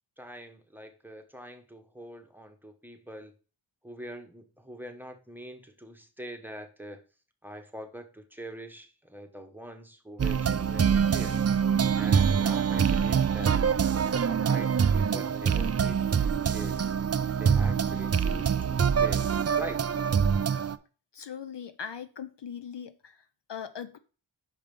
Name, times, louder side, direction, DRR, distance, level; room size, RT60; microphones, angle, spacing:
voice 1, 0.2-3.3 3.8-7.0 7.4-11.4 12.0-13.7 14.0-16.8 17.4-19.3 19.6-19.8, right 1 dB, 5° right, 4 dB, 1.2 m, -44 dB
sound 1, 10.2-20.8, right 7 dB, 35° right, 0.4 m, -25 dB
voice 2, 21.1-24.0, left 7 dB, 60° left, 12 dB, 0.7 m, -40 dB
5.8 x 4.9 x 5.3 m, 0.36 s
wide cardioid pair, 75°, 47 cm